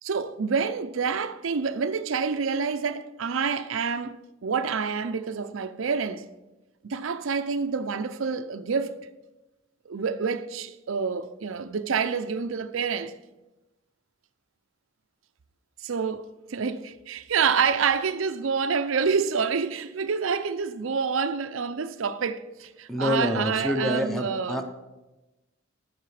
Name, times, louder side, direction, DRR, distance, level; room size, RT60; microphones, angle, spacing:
voice 1, 0.0-6.3 6.8-9.0 9.9-13.1 15.8-24.6, right 5 dB, 80° right, 0.6 m, -27 dB
voice 2, 22.9-24.6, left 1 dB, ahead, 1.0 m, -27 dB
12.5 x 8.0 x 4.9 m
head